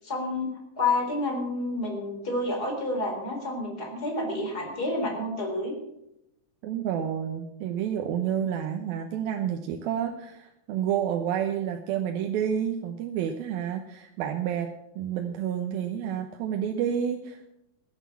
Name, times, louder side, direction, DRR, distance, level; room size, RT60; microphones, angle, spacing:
voice 1, 0.0-0.5 0.8-5.7, left 2 dB, 25° left, 1 dB, 4.2 m, -29 dB
voice 2, 6.6-17.5, right 9 dB, 85° right, 4 dB, 2.9 m, -29 dB
17.0 x 9.4 x 7.2 m, 0.83 s
omnidirectional pair, 4.1 m